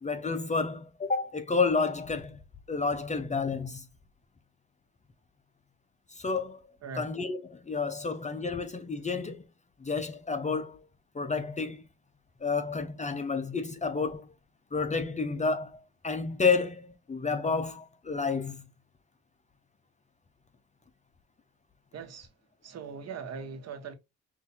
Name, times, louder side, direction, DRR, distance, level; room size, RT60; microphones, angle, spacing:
voice 1, 0.0-2.4 2.7-3.9 6.1-6.6 7.0-9.4 9.8-10.8 11.1-11.8 12.4-14.3 14.7-18.7, left 4 dB, 25° left, 0.7 m, -30 dB
voice 2, 21.9-23.9, right 5 dB, 55° right, 1.3 m, -41 dB
6.0 x 2.7 x 2.8 m
cardioid pair, 90°, 30 cm